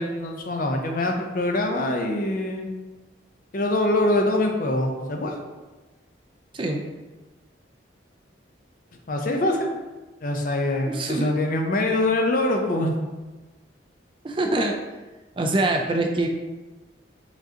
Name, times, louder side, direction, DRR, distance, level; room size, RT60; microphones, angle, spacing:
voice 1, 0.0-2.7 3.5-5.3 9.1-9.7 10.2-13.0, left 1 dB, 45° left, 2 dB, 0.6 m, -24 dB
voice 2, 10.9-11.3 14.2-14.8 15.4-16.3, right 2 dB, 30° right, 3 dB, 0.4 m, -24 dB
5.0 x 3.8 x 2.8 m, 1.2 s
head